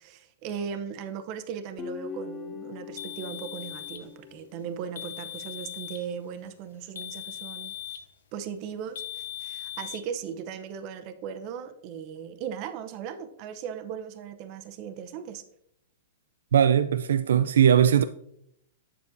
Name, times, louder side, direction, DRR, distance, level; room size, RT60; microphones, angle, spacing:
voice 1, 0.0-7.7 8.3-15.4, right 7 dB, 35° right, 0.7 m, -38 dB
Guitar, 1.8-5.1, left 5 dB, 15° left, 0.5 m, -41 dB
sound 1, 3.0-4.1 5.0-6.1 7.0-8.1 9.0-10.0, left 11 dB, 80° left, 0.6 m, -39 dB
voice 2, 16.5-18.0, right 9 dB, 85° right, 0.3 m, -20 dB
8.3 x 7.3 x 2.6 m
hypercardioid pair, 155°, 0 cm